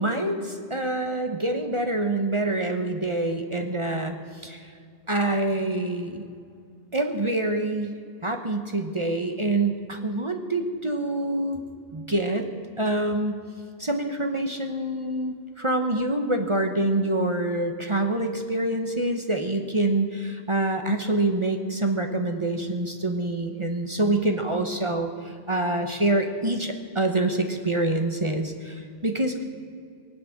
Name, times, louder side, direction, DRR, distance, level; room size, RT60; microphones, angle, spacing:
voice 1, 0.0-4.2 4.4-4.7 5.1-6.2 6.9-11.6 11.9-12.5 12.8-13.4 13.8-29.4, right 2 dB, 30° right, 5 dB, 1.1 m, -26 dB
23.0 x 8.3 x 7.2 m, 2.3 s
omnidirectional pair, 1.1 m